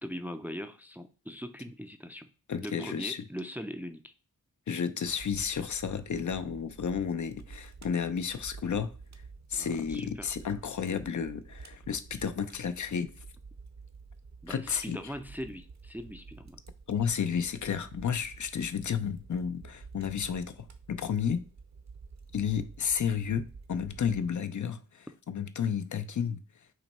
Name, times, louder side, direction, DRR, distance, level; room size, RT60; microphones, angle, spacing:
voice 1, 0.0-2.3 2.6-4.1 9.5-10.3 14.4-16.6, equal, 5° right, 0.4 m, -41 dB
voice 2, 2.5-3.2 4.7-8.9 9.5-13.1 14.5-15.0 16.9-21.5 22.3-26.4, left 7 dB, 60° left, 0.5 m, -32 dB
Fire, 5.0-24.3, right 4 dB, 55° right, 0.7 m, -50 dB
5.8 x 2.2 x 4.1 m
wide cardioid pair, 85°, 34 cm